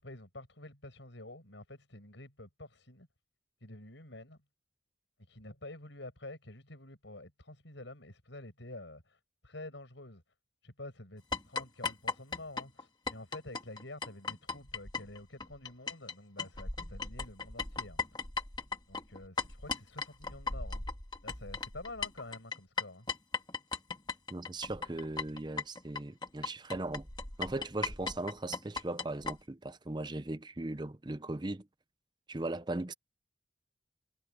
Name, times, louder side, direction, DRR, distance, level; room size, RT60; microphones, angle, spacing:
voice 1, 0.0-3.1 3.6-4.4 5.3-10.2 10.6-18.2 18.9-20.8 21.2-23.1, left 2 dB, 85° left, 6.5 m, -48 dB
sound 1, 11.3-16.1 16.4-29.4, left 4 dB, 25° left, 2.0 m, -37 dB
voice 2, 24.3-27.1 27.4-31.7 32.3-32.9, right 2 dB, 25° right, 0.7 m, -38 dB
head